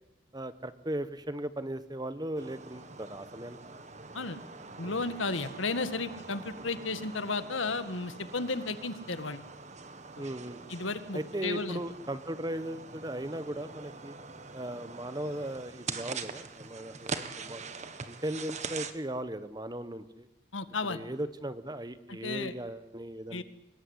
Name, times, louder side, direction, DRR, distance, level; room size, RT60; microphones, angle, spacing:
voice 1, 0.3-3.6 10.2-10.6 11.1-14.2 14.5-17.6 18.1-20.3 20.8-23.4, right 1 dB, 20° right, 12 dB, 1.2 m, -37 dB
sound 1, 2.4-18.9, right 4 dB, 35° right, 1.6 m, -44 dB
voice 2, 4.8-9.4 10.2-10.3 10.7-11.8 20.5-21.0 22.2-22.5 23.3-23.4, left 3 dB, 80° left, 11 dB, 1.9 m, -33 dB
24.5 x 21.5 x 9.8 m, 1.0 s
head